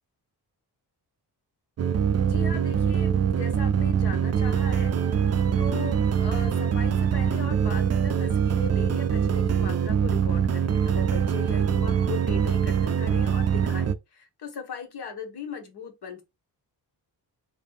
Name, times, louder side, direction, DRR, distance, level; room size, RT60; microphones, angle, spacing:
sound 1, 1.8-13.9, right 7 dB, 40° right, 0.4 m, -24 dB
voice 1, 2.2-5.0 5.6-16.2, left 6 dB, 70° left, 1.6 m, -38 dB
4.5 x 3.6 x 2.4 m
wide cardioid pair, 145°, 40 cm